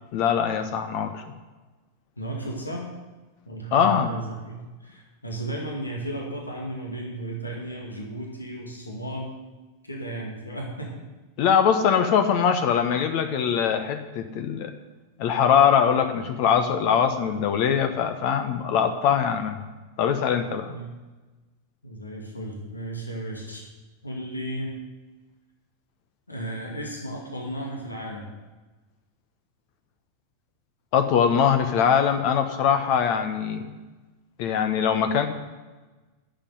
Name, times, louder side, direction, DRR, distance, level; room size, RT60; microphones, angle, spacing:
voice 1, 0.1-1.2 3.7-4.1 11.4-14.7 15.2-19.6 20.0-20.7 30.9-33.6 34.4-35.3, left 7 dB, 45° left, 8 dB, 1.1 m, -22 dB
voice 2, 2.2-2.9 3.4-9.4 9.8-11.0 20.7-20.9 21.8-23.6 24.0-24.7 26.3-28.3, right 1 dB, 80° left, -1 dB, 2.4 m, -34 dB
10.5 x 7.5 x 9.2 m, 1.2 s
figure-of-eight pair, 90°, 0 cm